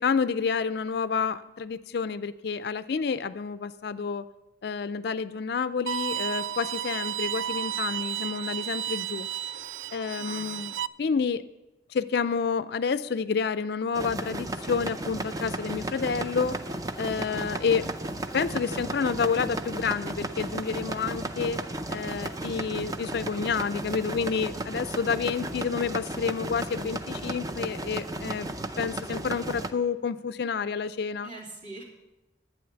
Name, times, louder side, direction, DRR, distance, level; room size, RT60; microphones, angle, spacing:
voice 1, 0.0-4.2 4.6-9.3 9.9-11.4 11.9-16.6 17.0-17.9 18.3-21.6 21.9-28.5 28.8-31.3, left 5 dB, 55° left, 14 dB, 0.4 m, -29 dB
Bowed string instrument, 5.9-10.9, right 10 dB, 90° right, 0.4 m, -32 dB
voice 2, 10.2-10.6 31.2-31.8, right 2 dB, 40° right, -3 dB, 3.1 m, -43 dB
sound 1, 13.9-29.7, right 1 dB, 20° right, 0.5 m, -34 dB
12.0 x 8.6 x 6.9 m, 1.0 s
head